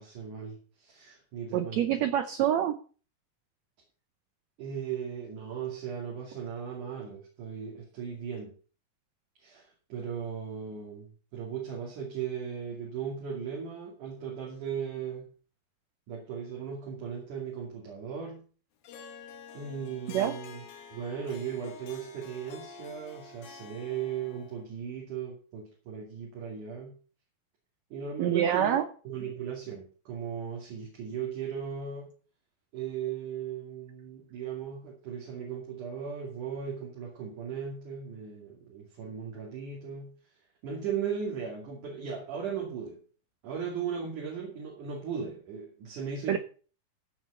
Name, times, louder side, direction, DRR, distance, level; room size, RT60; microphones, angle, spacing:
voice 1, 0.0-2.1 4.6-8.5 9.4-15.3 16.1-18.4 19.5-20.6 20.9-27.0 27.9-32.1 32.7-40.1 40.6-43.0 43.4-46.4, right 7 dB, 60° right, -2 dB, 3.9 m, -37 dB
voice 2, 1.5-2.7 20.1-20.3 28.2-28.8 46.3-46.4, right 10 dB, 85° right, 10 dB, 1.5 m, -26 dB
Harp, 18.8-24.7, left 5 dB, 85° left, 3.5 m, -48 dB
15.0 x 6.3 x 5.7 m, 0.39 s
omnidirectional pair, 4.1 m